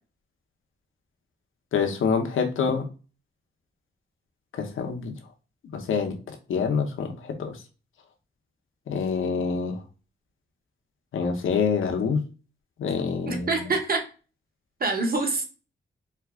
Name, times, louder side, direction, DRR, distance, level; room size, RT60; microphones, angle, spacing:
voice 1, 1.7-2.8 4.5-5.1 5.7-7.1 7.4-7.6 8.9-9.8 11.1-12.2 12.8-13.7, left 6 dB, 90° left, 4 dB, 0.9 m, -26 dB
voice 2, 13.3-14.0 14.8-15.4, right 3 dB, 45° right, 4 dB, 1.3 m, -25 dB
4.6 x 2.4 x 3.6 m, 0.35 s
cardioid pair, 80°, 20 cm